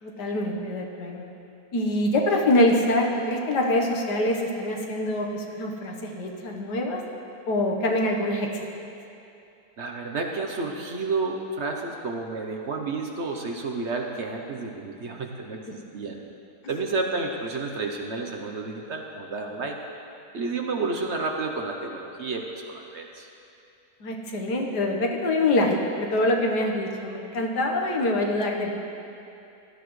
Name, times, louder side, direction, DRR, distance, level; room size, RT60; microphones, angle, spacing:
voice 1, 0.0-1.3 1.7-7.0 7.5-8.6 24.0-28.7, left 1 dB, 85° left, 1 dB, 1.8 m, -25 dB
voice 2, 9.8-16.2 16.7-19.8 20.3-23.3, right 3 dB, 55° right, 2 dB, 0.9 m, -31 dB
17.5 x 12.5 x 3.2 m, 2.7 s
omnidirectional pair, 1.7 m